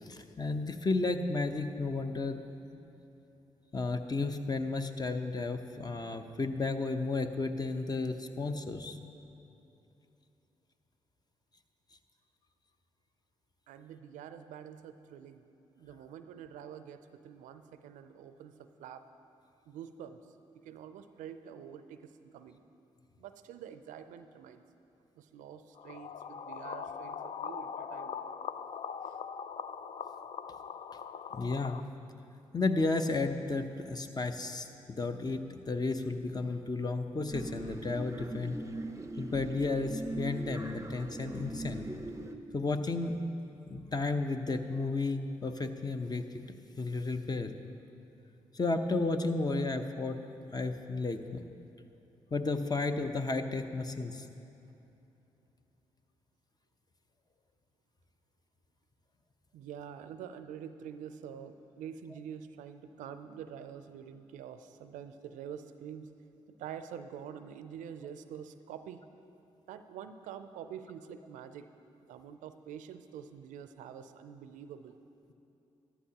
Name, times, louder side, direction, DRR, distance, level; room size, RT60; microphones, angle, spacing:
voice 1, 0.0-2.4 3.7-9.0 31.3-31.8 32.5-38.6 39.2-41.9 42.5-43.2 43.7-46.2 46.8-47.5 48.5-50.2 50.5-51.4 52.3-54.2, left 3 dB, 30° left, 7 dB, 0.8 m, -33 dB
voice 2, 13.7-15.4 15.8-18.5 18.8-19.0 19.7-20.2 20.6-22.6 23.2-24.6 25.2-28.2 59.5-66.1 66.6-69.0 69.7-71.7 72.1-75.0, right 8 dB, 80° right, 10 dB, 0.4 m, -46 dB
sound 1, 25.8-31.8, left 7 dB, 55° left, 0.4 m, -41 dB
Mae Hong Son Park, 37.3-42.3, right 2 dB, 25° right, 0.6 m, -40 dB
14.0 x 11.0 x 2.9 m, 2.9 s
hypercardioid pair, 40°, 13 cm